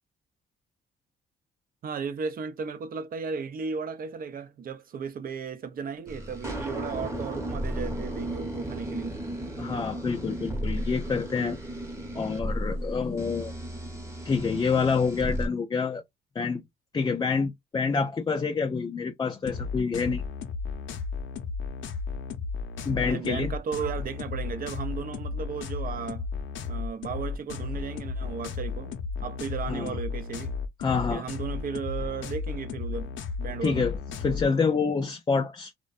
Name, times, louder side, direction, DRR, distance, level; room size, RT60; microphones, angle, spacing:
voice 1, 1.8-9.2 23.0-26.3 26.7-28.9 29.2-30.5 31.1-33.9, right 6 dB, 45° right, 0.5 m, -35 dB
sound 1, 6.1-15.5, right 1 dB, 15° right, 0.8 m, -34 dB
voice 2, 9.6-11.6 12.1-13.5 14.2-16.0 16.4-16.6 16.9-20.2 22.9-23.5 29.7-30.0 30.8-31.2 33.6-35.7, left 5 dB, 20° left, 0.3 m, -27 dB
sound 2, 19.4-34.5, left 5 dB, 75° left, 0.6 m, -34 dB
2.5 x 2.1 x 2.3 m
cardioid pair, 90°, 20 cm